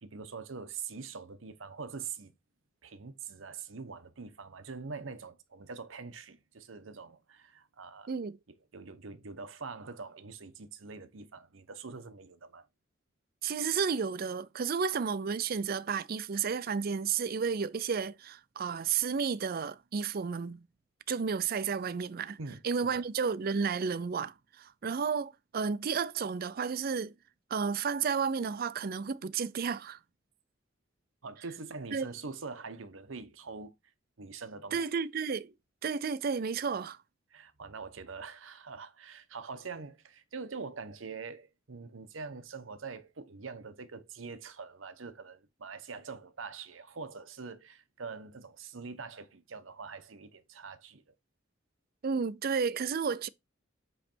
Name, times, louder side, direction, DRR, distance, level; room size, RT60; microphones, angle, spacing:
voice 1, 0.0-2.3 2.8-8.1 8.7-12.7 22.4-22.6 22.9-23.0 31.2-33.7 34.2-34.8 37.3-51.0, right 4 dB, 85° right, 0.9 m, -44 dB
voice 2, 8.1-8.4 13.4-20.6 21.1-22.4 22.6-27.1 27.5-30.0 31.9-32.1 34.7-35.5 35.8-37.0 52.0-53.3, right 6 dB, 50° right, 0.4 m, -32 dB
7.8 x 3.2 x 4.4 m
head